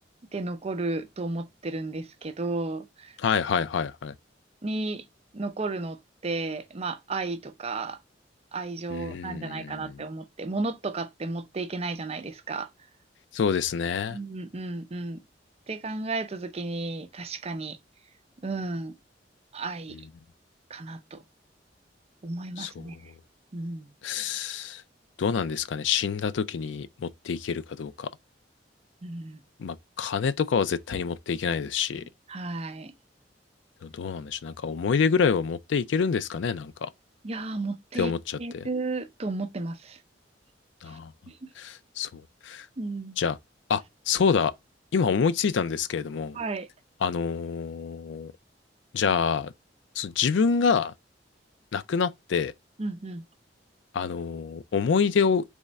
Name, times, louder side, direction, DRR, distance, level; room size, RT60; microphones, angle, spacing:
voice 1, 0.3-3.2 4.6-5.0 5.3-8.0 8.5-12.7 14.1-15.2 15.7-17.8 18.4-18.9 19.5-20.0 20.7-21.2 22.2-23.0 23.5-23.9 29.0-29.4 32.3-32.9 37.2-38.1 38.4-40.0 40.9-41.0 41.3-41.4 42.8-43.2 46.3-46.7 52.8-53.2, right 3 dB, 35° right, 0.6 m, -33 dB
voice 2, 3.2-4.1 8.9-10.0 13.3-14.2 22.6-23.0 24.0-24.8 25.2-28.1 29.6-32.0 33.8-36.9 38.0-38.7 40.8-41.1 41.6-42.7 43.2-43.4 43.7-44.5 44.9-46.4 47.0-48.3 48.9-49.5 50.0-50.9 51.7-52.5 53.9-55.4, left 6 dB, 80° left, 0.4 m, -27 dB
3.5 x 3.2 x 4.0 m
head